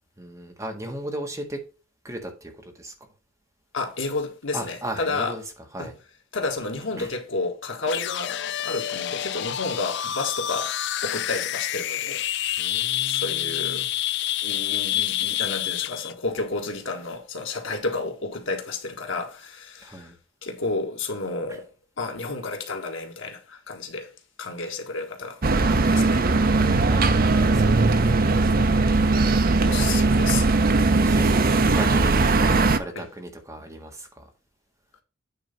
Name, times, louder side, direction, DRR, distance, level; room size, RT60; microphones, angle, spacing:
voice 1, 0.2-1.6 2.0-2.9 4.5-5.4 5.7-6.0 7.0-7.1 12.6-13.9 19.8-20.1 21.5-21.6 26.6-27.9 30.9-34.2, right 1 dB, 15° right, 1.6 m, -36 dB
voice 2, 3.7-5.3 5.8-5.9 6.3-12.2 13.0-13.9 14.4-20.1 20.4-21.7 22.0-24.1 24.4-26.2 29.7-30.4 32.9-33.0, left 3 dB, 90° left, 1.7 m, -31 dB
sound 1, 7.8-16.1, left 12 dB, 65° left, 0.4 m, -28 dB
sound 2, 25.4-32.8, right 3 dB, 50° right, 0.7 m, -19 dB
9.0 x 3.9 x 5.3 m
head